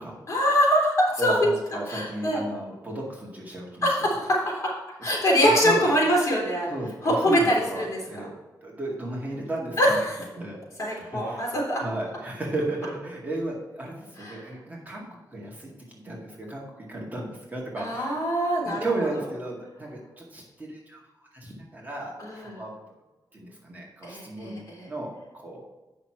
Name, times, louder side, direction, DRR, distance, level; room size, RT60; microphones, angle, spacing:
voice 1, 0.3-1.5 1.9-2.4 3.8-4.7 5.0-6.7 7.0-8.0 9.8-10.1 10.8-11.8 14.2-14.4 17.8-18.9 22.3-22.6 24.0-24.9, equal, 45° left, -4 dB, 3.4 m, -23 dB
voice 2, 1.2-3.9 5.6-5.9 6.7-8.3 8.6-10.0 10.3-10.6 10.9-18.3 18.6-21.0 21.3-22.8 23.3-25.6, right 1 dB, 25° right, -3 dB, 2.1 m, -35 dB
8.8 x 6.2 x 4.6 m, 1.1 s
wide cardioid pair, 130°, 7 cm